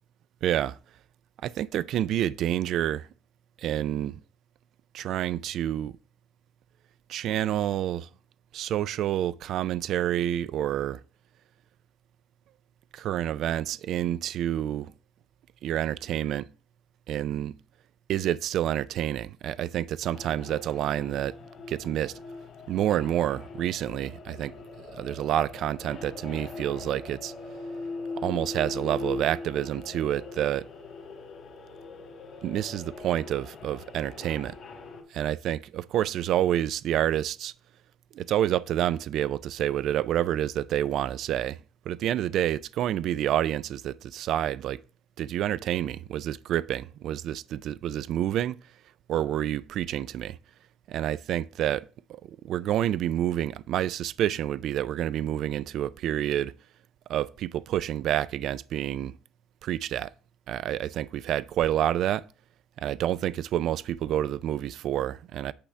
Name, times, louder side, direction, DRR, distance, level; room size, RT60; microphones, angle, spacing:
voice 1, 0.4-0.8 1.4-3.1 3.6-4.2 4.9-5.9 7.1-8.1 8.5-11.0 12.9-14.9 15.6-16.5 17.1-17.5 18.1-21.4 21.7-22.1 22.7-24.5 24.8-27.3 28.2-30.7 32.4-34.6 35.1-37.5 38.1-41.6 41.9-44.8 45.2-48.6 49.1-50.4 50.9-56.5 57.1-59.2 59.6-60.1 60.5-62.2 62.8-65.5, right 11 dB, 55° right, 0.3 m, -28 dB
sound 1, 20.0-35.0, left 3 dB, 35° left, 1.6 m, -41 dB
8.6 x 3.4 x 5.7 m
cardioid pair, 160°, 0 cm